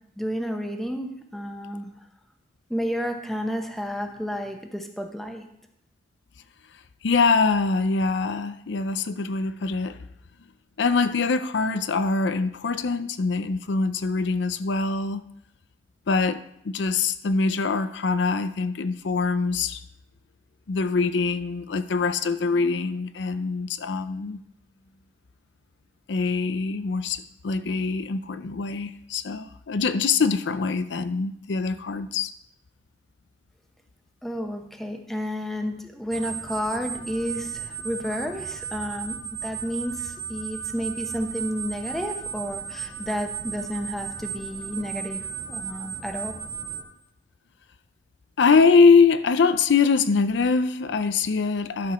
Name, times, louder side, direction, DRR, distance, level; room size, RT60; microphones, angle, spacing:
voice 1, 0.2-1.9 2.7-5.5 34.2-45.2 45.5-46.3, equal, ahead, 0.9 m, -31 dB
voice 2, 7.0-10.0 10.8-15.2 16.1-19.8 20.7-24.4 26.1-32.3 48.4-51.9, left 4 dB, 75° left, 0.5 m, -23 dB
sound 1, 36.1-46.8, right 8 dB, 65° right, 1.5 m, -35 dB
11.5 x 4.9 x 5.9 m
head